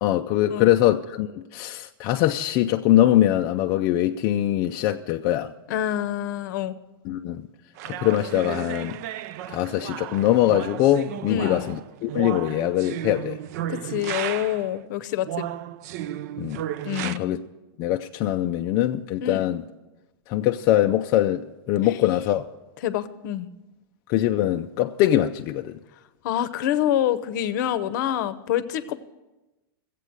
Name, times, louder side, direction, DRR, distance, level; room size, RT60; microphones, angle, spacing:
voice 1, 0.0-5.5 7.1-7.5 7.9-9.0 9.5-13.4 16.4-16.6 17.0-17.4 17.8-19.6 20.3-22.4 24.1-25.8, left 13 dB, 30° left, 0.4 m, -22 dB
voice 2, 5.7-6.7 11.3-11.7 13.7-15.5 16.8-17.4 19.2-19.5 21.8-22.0 22.8-23.5 26.2-29.0, left 11 dB, 55° left, 0.7 m, -27 dB
sound 1, 7.8-14.7 15.2-17.2, right 12 dB, 45° right, 0.4 m, -34 dB
14.5 x 8.3 x 7.9 m
supercardioid pair, 160°, 12 cm